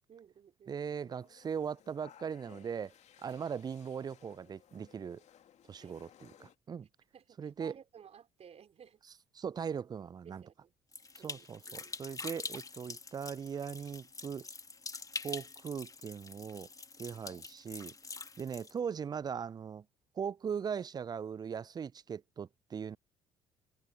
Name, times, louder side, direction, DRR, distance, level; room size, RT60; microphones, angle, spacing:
voice 1, 0.1-0.8 5.8-6.0 7.1-9.0 10.2-10.7 11.2-12.0 17.1-17.5, right 8 dB, 45° right, 5.0 m, -57 dB
voice 2, 0.7-2.9 3.2-5.2 5.7-6.9 7.4-7.7 9.3-10.4 11.2-14.5 15.2-16.7 17.0-17.9 18.4-19.9 20.2-23.0, right 7 dB, 25° right, 0.4 m, -39 dB
sound 1, 0.9-6.6, left 9 dB, 50° left, 2.5 m, -61 dB
sound 2, 10.9-18.7, left 3 dB, 25° left, 1.9 m, -45 dB
figure-of-eight pair, 50°, 15 cm